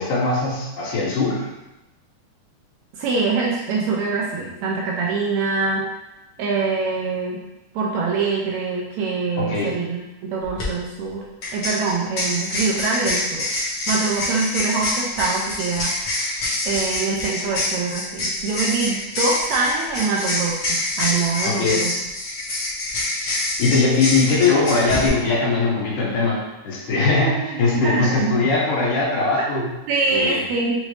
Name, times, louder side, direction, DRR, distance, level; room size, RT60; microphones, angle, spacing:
voice 1, 0.0-1.5 9.4-9.8 21.4-21.8 23.6-29.7 30.1-30.4, left 3 dB, 80° left, -5 dB, 2.6 m, -21 dB
voice 2, 3.0-5.8 6.4-7.4 7.7-11.2 11.5-13.4 13.9-15.9 16.2-16.3 16.6-21.9 26.9-28.5 29.5-30.7, right 4 dB, 75° right, -2 dB, 1.7 m, -24 dB
sound 1, 10.4-10.7 11.4-25.1, left 2 dB, 55° left, 1.2 m, -26 dB
6.3 x 2.6 x 3.1 m, 0.99 s
omnidirectional pair, 3.5 m